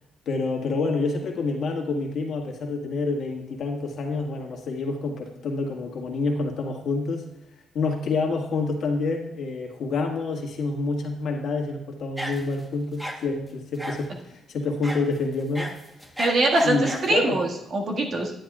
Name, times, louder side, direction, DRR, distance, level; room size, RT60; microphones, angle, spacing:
voice 1, 0.2-7.2 7.7-15.7 16.6-17.4, left 3 dB, 65° left, 1 dB, 1.6 m, -28 dB
sound 1, 12.2-12.6 13.0-13.2 13.8-14.1 14.8-15.0 15.4-17.1, equal, 5° right, 1.2 m, -33 dB
voice 2, 16.2-18.3, right 2 dB, 55° right, 0 dB, 1.8 m, -23 dB
10.5 x 10.0 x 2.4 m, 0.89 s
cardioid pair, 90°, 0 cm